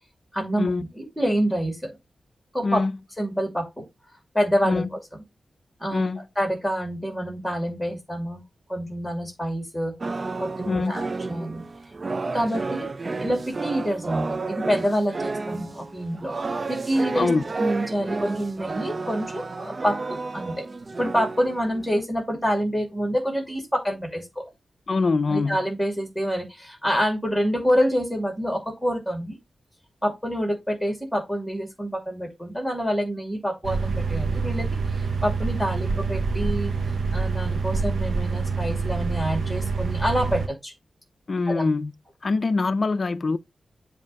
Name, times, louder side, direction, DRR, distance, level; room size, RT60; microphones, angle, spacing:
voice 1, 0.3-2.0 2.5-2.8 3.2-3.8 4.3-4.8 5.8-6.1 6.4-8.4 8.7-9.9 10.4-11.7 12.3-12.9 13.2-17.3 17.6-20.7 21.0-24.4 25.3-29.4 30.0-34.7 34.9-36.7 37.1-40.7 41.5-41.7, equal, ahead, 2.3 m, -27 dB
voice 2, 2.6-3.0 4.6-4.9 5.9-6.3 10.7-11.0 17.1-17.4 24.9-25.6 41.3-41.9 42.2-43.4, left 3 dB, 40° left, 0.4 m, -24 dB
sound 1, 10.0-22.1, right 3 dB, 30° right, 0.3 m, -31 dB
sound 2, 33.6-40.5, right 4 dB, 60° right, 0.8 m, -26 dB
7.5 x 2.6 x 5.3 m
wide cardioid pair, 165°, 0 cm